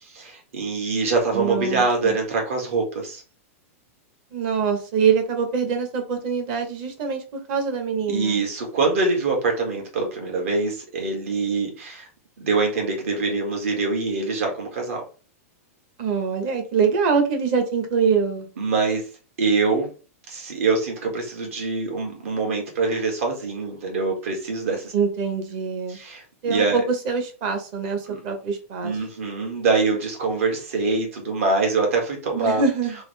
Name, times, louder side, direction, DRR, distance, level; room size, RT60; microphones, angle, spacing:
voice 1, 0.1-3.2 8.1-12.1 12.4-15.0 18.6-19.1 19.4-19.9 20.3-24.9 25.9-26.8 28.1-28.2 28.8-32.6, right 3 dB, 60° right, 2.0 m, -24 dB
voice 2, 1.3-2.2 4.3-7.2 7.5-8.4 16.0-18.5 24.9-26.0 26.4-29.0 32.3-32.9, right 6 dB, 35° right, 1.1 m, -24 dB
3.8 x 3.4 x 3.3 m
supercardioid pair, 170°, 8 cm